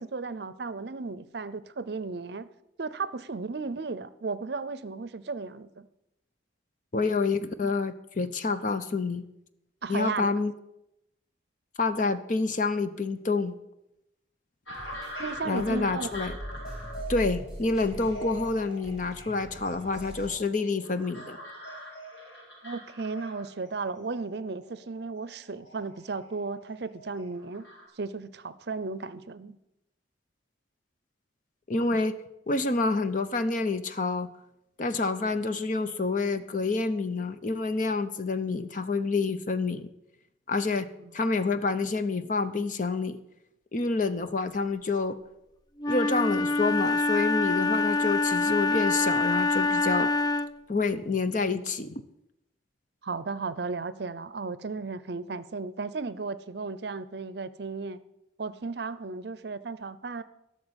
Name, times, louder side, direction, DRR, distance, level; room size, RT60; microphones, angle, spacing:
voice 1, 0.0-2.5 2.8-5.9 9.8-10.3 15.2-16.1 22.6-27.7 28.0-29.6 41.0-41.1 53.0-58.0 58.4-60.2, right 4 dB, 60° right, 16 dB, 0.6 m, -35 dB
voice 2, 6.9-9.2 9.9-10.5 11.8-13.5 15.4-16.3 17.1-21.4 31.7-32.2 32.5-34.3 34.8-39.9 40.5-40.9 41.1-43.2 43.7-45.2 45.9-50.1 50.7-51.9, left 3 dB, 45° left, 11 dB, 0.7 m, -28 dB
sound 1, 14.7-27.9, equal, 80° left, 4.6 m, -44 dB
sound 2, 14.7-20.3, equal, 5° right, 3.5 m, -42 dB
Wind instrument woodwind instrument, 45.8-50.6, left 3 dB, 20° left, 0.4 m, -25 dB
13.0 x 6.6 x 8.1 m, 0.87 s
head